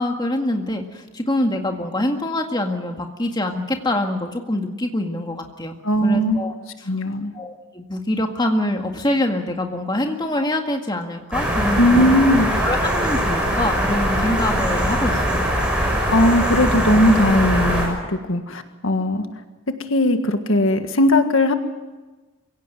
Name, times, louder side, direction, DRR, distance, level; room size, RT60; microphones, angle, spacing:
voice 1, 0.0-5.8 6.0-6.9 7.3-12.1 12.6-15.5, left 1 dB, 20° left, 3 dB, 1.9 m, -25 dB
voice 2, 5.8-6.4 6.9-7.3 11.8-12.5 16.1-19.2 19.9-21.5, left 1 dB, 75° left, 7 dB, 1.7 m, -18 dB
sound 1, 11.3-17.9, equal, 5° right, 6.5 m, -21 dB
23.5 x 17.0 x 9.2 m, 1.2 s
head